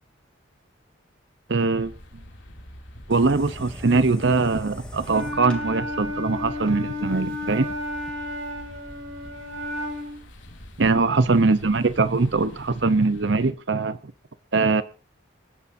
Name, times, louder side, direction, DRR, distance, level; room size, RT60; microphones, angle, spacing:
voice 1, 1.5-1.9 3.1-7.7 10.8-14.0 14.5-14.8, right 3 dB, 60° right, 0.8 m, -22 dB
sound 1, 1.7-13.5, equal, 70° left, 2.7 m, -45 dB
sound 2, 3.1-8.1, left 1 dB, 5° left, 2.7 m, -44 dB
Wind instrument woodwind instrument, 5.0-10.2, left 1 dB, 85° right, 5.6 m, -32 dB
27.5 x 10.0 x 2.7 m
head